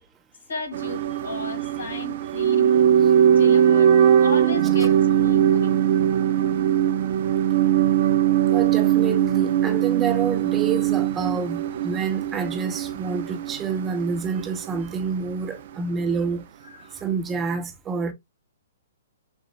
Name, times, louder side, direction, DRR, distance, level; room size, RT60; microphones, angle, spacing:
voice 1, 0.5-2.7 3.1-4.0 4.2-5.8 16.7-17.1, left 4 dB, 85° left, 2.0 m, -35 dB
sound 1, 0.7-14.8 15.0-15.1, right 9 dB, 55° right, 0.5 m, -20 dB
voice 2, 8.2-16.4 17.0-18.1, right 5 dB, 15° right, 0.8 m, -28 dB
6.8 x 2.4 x 2.3 m
hypercardioid pair, 140°, 0 cm